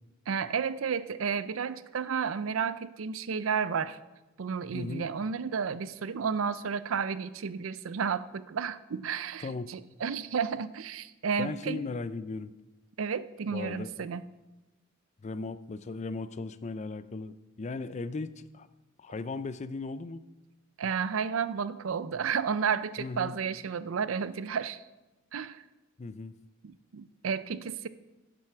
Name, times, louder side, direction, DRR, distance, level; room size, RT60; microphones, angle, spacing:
voice 1, 0.3-4.0 4.4-11.8 13.0-14.2 20.8-24.8 25.3-25.6 26.6-27.9, right 6 dB, 85° right, 15 dB, 0.5 m, -32 dB
voice 2, 4.7-5.0 9.4-9.7 11.4-12.5 13.5-13.9 15.2-18.7 19.0-20.2 23.0-23.4 26.0-26.3, left 3 dB, 35° left, 14 dB, 0.4 m, -37 dB
10.5 x 7.7 x 5.9 m, 1.1 s
head